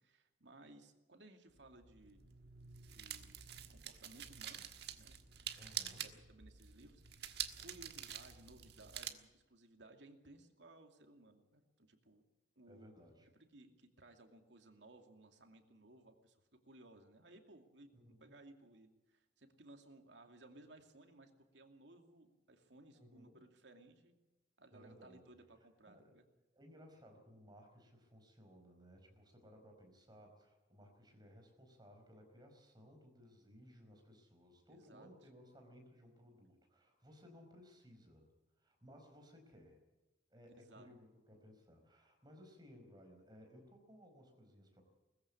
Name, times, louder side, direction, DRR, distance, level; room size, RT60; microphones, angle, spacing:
voice 1, 0.0-2.3 2.9-3.4 3.7-4.7 5.0-5.5 6.0-7.0 7.6-12.2 12.6-12.9 13.2-16.4 16.6-24.2 24.6-26.2 34.6-35.1 40.6-40.9, right 2 dB, 80° right, 5 dB, 2.5 m, -61 dB
sound 1, 1.5-9.1, right 10 dB, 65° right, 1.5 m, -47 dB
voice 2, 5.5-6.1 12.7-13.3 17.9-18.3 22.9-23.4 24.7-25.3 25.9-26.2 26.5-38.3 38.6-39.8 40.3-44.8, equal, 25° right, 3 dB, 4.8 m, -60 dB
20.5 x 15.0 x 8.5 m, 1.1 s
head